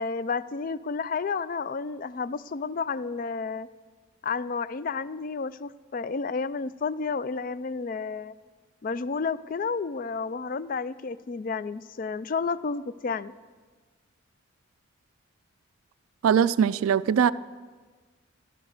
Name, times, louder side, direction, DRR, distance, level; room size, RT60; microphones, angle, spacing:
voice 1, 0.0-3.7 4.2-8.3 8.8-13.3, left 4 dB, 40° left, 16 dB, 0.3 m, -31 dB
voice 2, 16.2-17.3, right 8 dB, 80° right, 16 dB, 0.3 m, -21 dB
13.0 x 12.5 x 6.6 m, 1.4 s
head